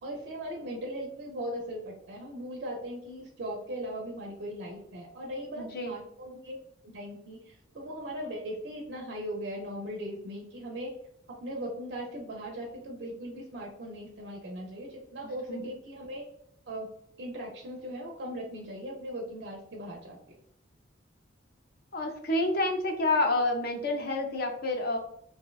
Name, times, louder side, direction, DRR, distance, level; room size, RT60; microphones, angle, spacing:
voice 1, 0.0-6.6 6.8-10.9 11.3-16.2 16.7-16.9 17.2-20.4, equal, 55° right, 0 dB, 0.4 m, -39 dB
voice 2, 5.6-5.9 15.5-15.7 21.9-25.0, left 2 dB, 50° left, 3 dB, 0.4 m, -28 dB
2.6 x 2.1 x 2.2 m, 0.71 s
head